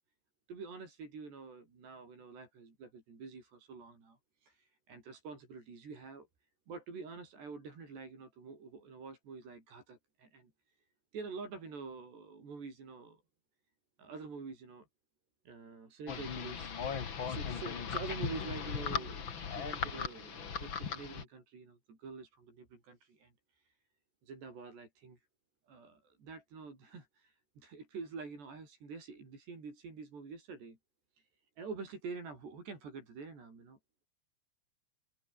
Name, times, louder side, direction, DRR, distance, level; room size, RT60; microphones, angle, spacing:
voice 1, 0.5-6.3 6.7-10.8 11.1-13.2 14.0-14.9 15.5-23.7 24.2-25.2 25.7-30.8 31.2-31.3 31.6-33.8, right 4 dB, 60° right, 9.2 m, -47 dB
sound 1, 16.1-21.2, left 6 dB, 50° left, 1.5 m, -38 dB
omnidirectional pair, 5.4 m